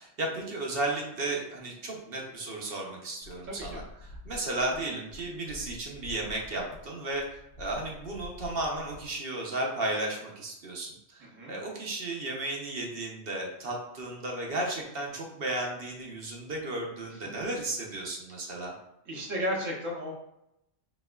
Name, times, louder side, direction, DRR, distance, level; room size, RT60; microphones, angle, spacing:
voice 1, 0.0-7.3 7.6-18.7, right 2 dB, 55° right, 0 dB, 0.9 m, -34 dB
sound 1, 3.2-9.1, left 1 dB, 60° left, 0.8 m, -47 dB
voice 2, 3.5-3.8 11.2-11.6 19.1-20.1, equal, 80° right, -3 dB, 1.3 m, -34 dB
4.2 x 3.3 x 2.3 m, 0.83 s
omnidirectional pair, 1.3 m